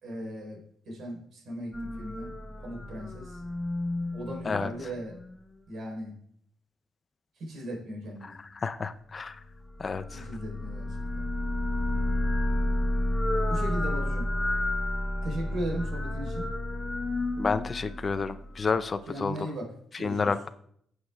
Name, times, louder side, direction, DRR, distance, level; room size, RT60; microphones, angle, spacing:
voice 1, 0.0-2.3 2.6-3.4 4.1-5.2 5.7-6.2 7.4-8.4 10.1-11.3 13.5-14.3 15.2-16.5 19.1-20.3, right 1 dB, 65° right, 1 dB, 4.1 m, -37 dB
sound 1, 1.7-5.3 9.6-18.8, left 1 dB, 15° left, 0.9 m, -31 dB
voice 2, 8.2-9.4 9.8-10.3 17.4-19.5 20.0-20.5, left 4 dB, 35° left, 13 dB, 0.5 m, -30 dB
16.0 x 7.9 x 2.4 m, 0.67 s
cardioid pair, 90°, 0 cm